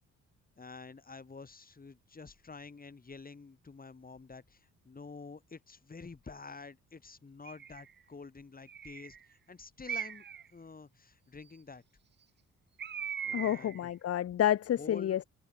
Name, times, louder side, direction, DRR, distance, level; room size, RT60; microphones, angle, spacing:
voice 1, 0.6-10.2 10.5-11.8 13.2-13.9 14.8-15.2, left 4 dB, 30° left, 7.2 m, -49 dB
Bird, 7.5-7.9 8.7-9.2 9.9-10.5 12.8-13.8, right 8 dB, 35° right, 0.8 m, -39 dB
voice 2, 13.3-15.3, left 11 dB, 50° left, 0.9 m, -29 dB
open air
cardioid pair, 90°, 30 cm